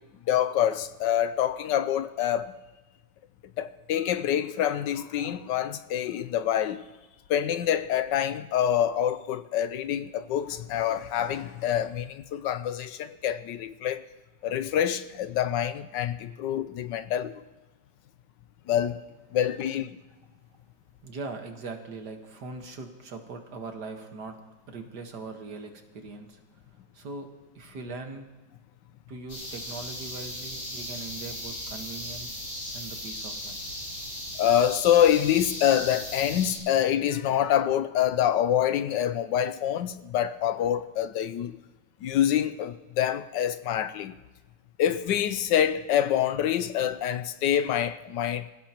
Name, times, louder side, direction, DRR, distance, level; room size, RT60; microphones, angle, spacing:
voice 1, 0.3-2.6 3.6-6.8 7.3-14.0 14.4-17.4 18.7-19.0 19.3-19.9 34.4-41.6 42.0-44.2 44.8-48.5, left 10 dB, 75° left, 1.3 m, -26 dB
voice 2, 21.0-24.4 24.7-26.4 26.9-27.3 27.6-28.3 29.1-32.4 32.7-33.6, right 3 dB, 60° right, 2.1 m, -40 dB
sound 1, 29.3-36.6, left 1 dB, 55° left, 6.9 m, -37 dB
25.5 x 16.0 x 3.0 m
omnidirectional pair, 2.0 m